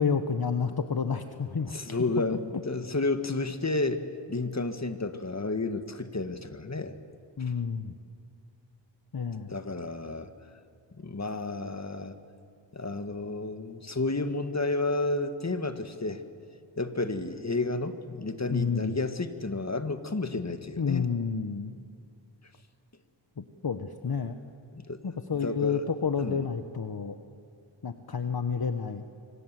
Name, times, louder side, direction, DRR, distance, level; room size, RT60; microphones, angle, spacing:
voice 1, 0.0-2.0 7.4-7.9 9.1-9.6 18.5-19.0 20.8-21.7 23.4-24.4 25.0-27.2 27.8-29.1, left 6 dB, 50° left, 8 dB, 1.2 m, -30 dB
voice 2, 1.7-7.0 7.4-7.5 9.5-10.3 11.0-12.2 12.7-16.2 16.8-21.1 24.7-25.0 25.4-25.8 26.2-26.4, left 2 dB, 35° left, 8 dB, 1.8 m, -31 dB
27.0 x 25.0 x 7.7 m, 2.3 s
cardioid pair, 50°, 46 cm